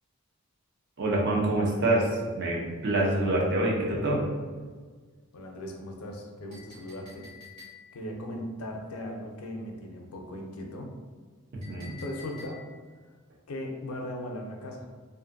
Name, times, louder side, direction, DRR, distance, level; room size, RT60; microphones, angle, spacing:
voice 1, 1.0-4.2 11.7-12.0, right 1 dB, 50° right, -3 dB, 0.6 m, -26 dB
voice 2, 5.3-7.3 7.9-10.9 11.8-12.6 13.5-14.9, left 1 dB, 80° left, 2 dB, 0.5 m, -38 dB
Chink clink, 6.5-8.1 11.6-12.9, left 5 dB, 35° right, 1.1 m, -49 dB
2.5 x 2.5 x 2.5 m, 1.5 s
head